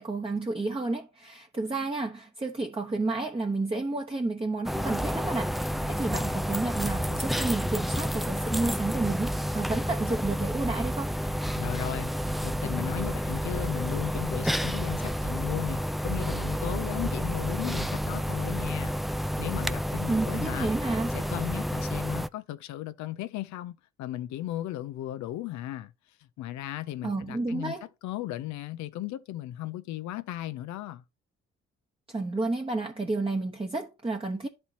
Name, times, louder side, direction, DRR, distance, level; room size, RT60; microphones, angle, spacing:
voice 1, 0.0-11.1 20.1-21.1 27.0-27.9 32.1-34.5, right 2 dB, 20° right, 1.0 m, -31 dB
sound 1, 4.6-22.3, equal, ahead, 0.3 m, -30 dB
voice 2, 11.6-12.1 12.4-18.9 19.4-20.7 21.1-25.9 26.4-27.7 28.0-31.0, left 14 dB, 70° left, 0.5 m, -36 dB
12.5 x 4.3 x 2.8 m
hypercardioid pair, 45°, 29 cm